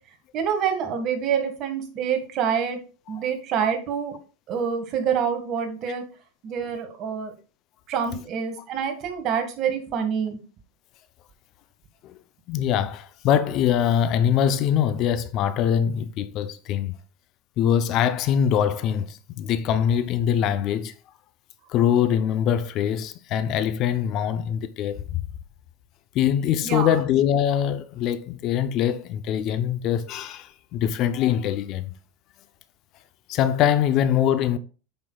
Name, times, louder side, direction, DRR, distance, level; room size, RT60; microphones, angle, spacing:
voice 1, 0.3-2.8 3.1-4.2 4.5-6.0 6.4-7.3 7.9-10.4 26.6-27.0, right 7 dB, 40° right, 1.6 m, -26 dB
voice 2, 12.5-16.9 17.6-20.9 21.7-25.2 26.1-31.9 33.3-34.6, left 9 dB, 45° left, 0.6 m, -23 dB
8.7 x 5.9 x 2.3 m
supercardioid pair, 135°, 0 cm